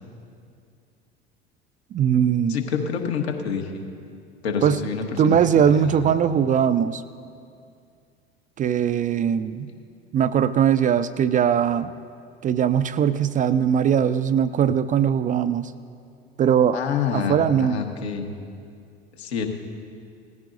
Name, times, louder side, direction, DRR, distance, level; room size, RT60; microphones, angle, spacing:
voice 1, 1.9-2.6 4.6-4.8 5.2-7.0 8.6-9.7 10.1-11.9 12.4-15.7 16.4-16.8 17.1-17.8, right 8 dB, 25° right, 13 dB, 0.4 m, -20 dB
voice 2, 2.5-3.8 4.4-6.1 9.7-9.8 16.7-18.3 19.2-19.5, left 6 dB, 75° left, 3 dB, 1.5 m, -28 dB
19.0 x 14.5 x 2.6 m, 2.4 s
figure-of-eight pair, 70°, 32 cm